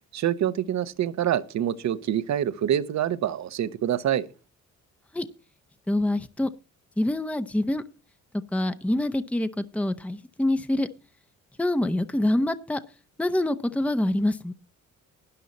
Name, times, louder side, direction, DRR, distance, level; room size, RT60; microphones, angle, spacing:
voice 1, 0.1-4.3, right 10 dB, 65° right, 1.1 m, -26 dB
voice 2, 5.9-6.5 7.0-7.8 8.5-10.9 11.6-12.8 13.2-14.5, left 1 dB, 5° left, 0.8 m, -25 dB
12.5 x 10.0 x 4.1 m
cardioid pair, 90°, 30 cm